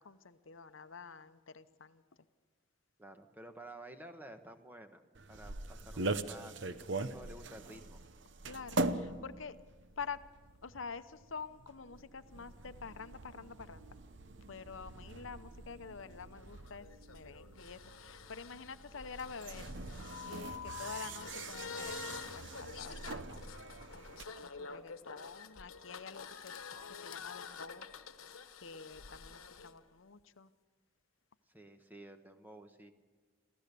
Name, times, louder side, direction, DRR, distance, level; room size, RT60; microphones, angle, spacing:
voice 1, 0.0-2.0 8.4-9.6 10.0-10.2 10.6-13.9 14.5-19.7 20.0-23.6 23.9-24.0 24.4-26.5 26.8-27.9 28.5-30.5, left 5 dB, 70° left, 12 dB, 0.8 m, -48 dB
voice 2, 3.0-5.0 5.3-8.0 31.5-32.9, right 1 dB, 10° right, 6 dB, 1.1 m, -52 dB
sound 1, 5.2-24.3, right 2 dB, 60° right, 0.8 m, -43 dB
sound 2, 16.0-29.7, left 6 dB, 90° left, 1.2 m, -48 dB
27.5 x 15.0 x 6.8 m, 1.4 s
head